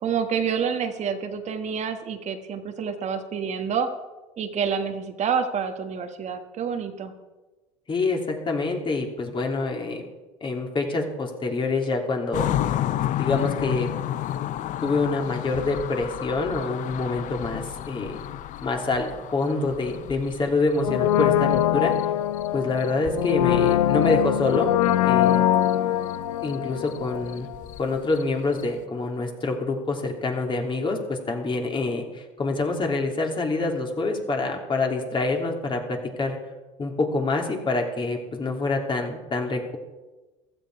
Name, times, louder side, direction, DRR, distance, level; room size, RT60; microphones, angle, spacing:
voice 1, 0.0-3.9 4.4-7.1, right 6 dB, 45° right, 6 dB, 1.5 m, -28 dB
voice 2, 7.9-10.1 10.4-12.5 13.2-13.9 14.8-18.2 18.6-21.9 22.5-24.7 25.0-25.4 26.4-27.5 27.8-36.4 36.8-39.8, left 3 dB, 30° left, 2 dB, 2.9 m, -26 dB
sound 1, 12.3-22.5 22.8-23.7 24.0-24.1 24.5-25.4 25.6-25.7 26.0-28.8, left 12 dB, 50° left, 0.7 m, -32 dB
Brass instrument, 20.8-27.7 27.9-28.0, left 12 dB, 85° left, 0.6 m, -23 dB
15.5 x 13.0 x 4.7 m, 1.1 s
hypercardioid pair, 80°, 17 cm